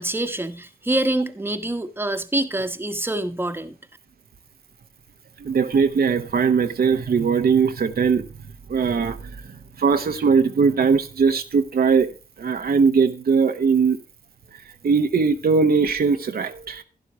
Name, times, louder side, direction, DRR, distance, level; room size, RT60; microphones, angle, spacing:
voice 1, 0.0-3.8, right 1 dB, 15° right, 1.2 m, -25 dB
voice 2, 5.4-8.2 8.7-9.3 9.8-12.1 12.4-14.0 14.8-16.8, right 5 dB, 70° right, 1.0 m, -20 dB
12.0 x 11.0 x 2.9 m
cardioid pair, 65°, 16 cm